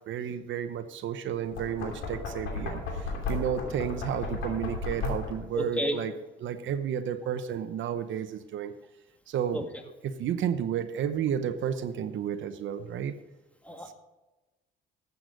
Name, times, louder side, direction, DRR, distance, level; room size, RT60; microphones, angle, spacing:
voice 1, 0.1-6.1 6.4-8.7 9.3-13.1, right 9 dB, 75° right, 10 dB, 0.8 m, -32 dB
Knock, 1.4-5.5, left 4 dB, 85° left, 2.9 m, -34 dB
voice 2, 5.5-5.9 9.5-9.6 13.7-13.9, right 1 dB, 5° left, 5 dB, 1.7 m, -30 dB
13.0 x 8.1 x 5.1 m, 1.1 s
cardioid pair, 90°, 20 cm